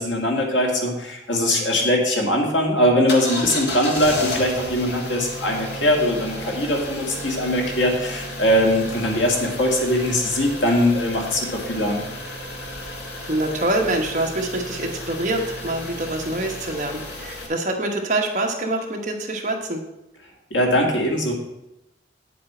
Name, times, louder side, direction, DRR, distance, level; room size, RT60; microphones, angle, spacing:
voice 1, 0.0-12.0 20.5-21.3, left 1 dB, 85° left, 0 dB, 2.1 m, -21 dB
sound 1, 3.1-17.5, left 1 dB, 65° left, 1.7 m, -33 dB
voice 2, 13.0-19.8, right 2 dB, 40° right, 1 dB, 1.2 m, -25 dB
8.9 x 7.6 x 4.4 m, 0.90 s
head